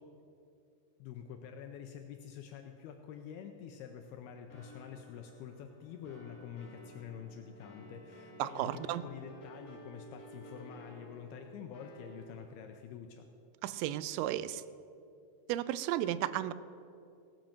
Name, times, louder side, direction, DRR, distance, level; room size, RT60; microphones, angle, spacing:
voice 1, 1.0-8.7 9.0-13.3, left 8 dB, 90° left, 5 dB, 2.3 m, -47 dB
sound 1, 4.5-12.8, equal, 55° left, 0.9 m, -53 dB
voice 2, 8.4-9.1 13.6-14.6 15.5-16.5, right 13 dB, 85° right, 16 dB, 2.8 m, -34 dB
17.0 x 7.7 x 7.3 m, 2.6 s
omnidirectional pair, 5.1 m